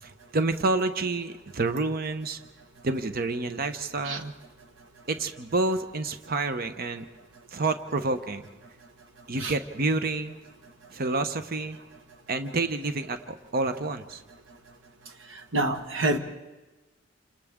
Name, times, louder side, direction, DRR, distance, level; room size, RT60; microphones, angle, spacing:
voice 1, 0.0-2.4 2.8-4.3 5.1-7.1 7.5-8.4 9.3-10.4 10.9-11.8 12.3-14.2, right 3 dB, 50° right, 9 dB, 0.9 m, -28 dB
voice 2, 15.3-16.2, right 2 dB, 70° right, 6 dB, 1.5 m, -27 dB
28.0 x 27.0 x 3.7 m, 1.1 s
head